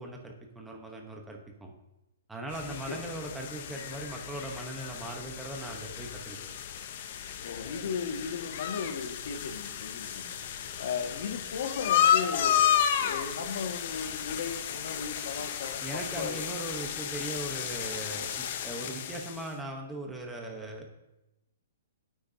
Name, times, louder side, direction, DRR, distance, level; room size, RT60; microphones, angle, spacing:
voice 1, 0.0-1.7 2.3-6.4 15.8-20.9, right 1 dB, 5° right, 1 dB, 1.0 m, -39 dB
sound 1, 2.5-19.5, left 9 dB, 40° left, 0.8 m, -32 dB
voice 2, 2.7-3.0 7.4-10.4 10.8-12.7 13.0-16.5, left 6 dB, 60° left, 4 dB, 1.7 m, -36 dB
17.0 x 8.9 x 2.8 m, 0.94 s
hypercardioid pair, 170°, 0 cm